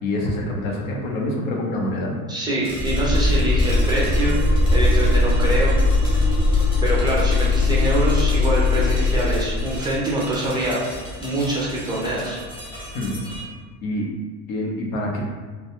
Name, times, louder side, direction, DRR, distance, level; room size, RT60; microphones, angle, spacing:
voice 1, 0.0-2.2 12.9-13.2 13.8-14.1 14.5-15.2, left 1 dB, 90° left, -1 dB, 0.7 m, -26 dB
voice 2, 2.3-4.4 4.7-5.8 6.8-10.8 11.2-12.4, right 1 dB, 10° right, -5 dB, 0.3 m, -24 dB
sound 1, 2.6-13.4, equal, 15° left, 0.9 m, -37 dB
sound 2, 2.8-10.0, left 2 dB, 50° left, 0.6 m, -19 dB
2.3 x 2.2 x 2.8 m, 1.4 s
supercardioid pair, 120°, 39 cm